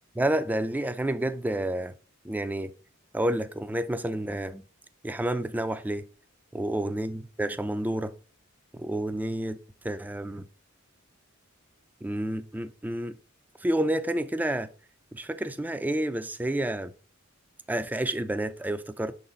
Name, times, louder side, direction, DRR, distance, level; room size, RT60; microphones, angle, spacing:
voice 1, 0.2-1.9 2.2-2.7 3.1-4.6 5.0-6.1 6.5-8.1 8.8-9.6 9.8-10.5 12.0-13.1 13.6-14.7 15.1-16.9 17.7-19.1, right 1 dB, 10° right, 0.4 m, -29 dB
6.4 x 4.0 x 3.9 m
head